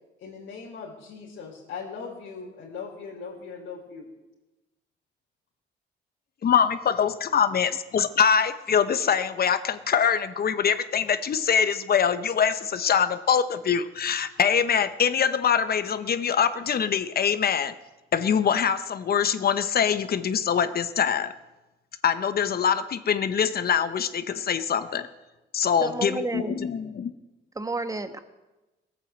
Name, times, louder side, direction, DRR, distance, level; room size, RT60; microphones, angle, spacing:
voice 1, 0.2-4.1, left 5 dB, 70° left, -4 dB, 3.7 m, -39 dB
voice 2, 6.4-17.7 18.1-21.3 22.0-25.1 25.5-27.1, left 7 dB, 50° left, 12 dB, 1.0 m, -24 dB
voice 3, 25.8-26.7 27.5-28.2, right 3 dB, 15° right, 9 dB, 1.3 m, -31 dB
17.5 x 9.2 x 7.8 m, 1.1 s
cardioid pair, 90°, 20 cm